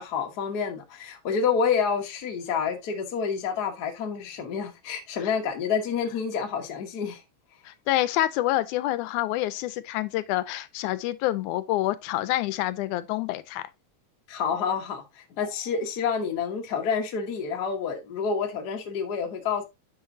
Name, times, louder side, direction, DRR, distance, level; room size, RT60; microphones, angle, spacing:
voice 1, 0.0-7.2 14.3-19.6, left 6 dB, 45° left, 1.3 m, -28 dB
voice 2, 7.7-13.7, left 15 dB, 85° left, 2.0 m, -27 dB
9.6 x 5.6 x 2.7 m
omnidirectional pair, 3.5 m